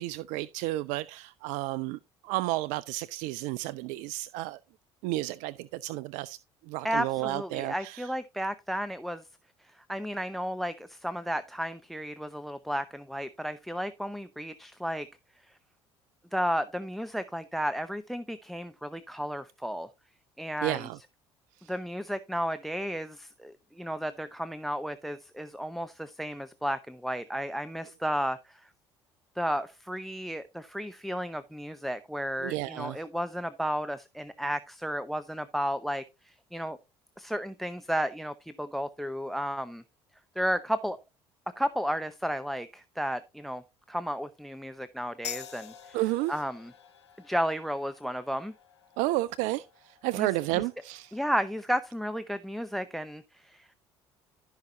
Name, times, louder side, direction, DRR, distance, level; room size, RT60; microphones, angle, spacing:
voice 1, 0.0-4.6 5.0-6.4 6.7-8.1 20.6-21.0 21.6-21.7 32.4-33.0 45.9-46.3 49.0-51.2, right 18 dB, 65° right, 0.4 m, -32 dB
voice 2, 6.8-9.2 9.9-15.1 15.5-15.6 16.3-19.9 20.4-20.9 21.7-28.7 29.4-36.8 37.2-39.8 40.4-41.0 41.6-43.6 43.9-46.0 46.3-46.7 47.2-48.5 50.2-50.3 51.1-53.7, equal, ahead, 0.7 m, -33 dB
sound 1, 45.2-52.3, left 9 dB, 85° left, 0.7 m, -48 dB
14.0 x 5.8 x 2.8 m
hypercardioid pair, 60°, 14 cm